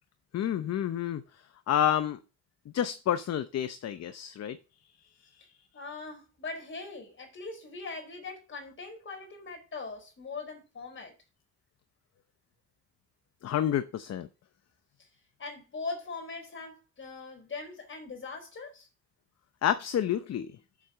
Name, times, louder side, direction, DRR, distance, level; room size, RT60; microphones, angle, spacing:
voice 1, 0.3-1.2 1.7-2.2 2.7-4.6 5.4-5.5 13.4-14.3 19.6-20.5, left 10 dB, 60° left, 0.8 m, -29 dB
voice 2, 5.7-11.1 15.4-18.9, left 3 dB, 40° left, 4.5 m, -41 dB
7.7 x 7.6 x 5.1 m
cardioid pair, 90°, 30 cm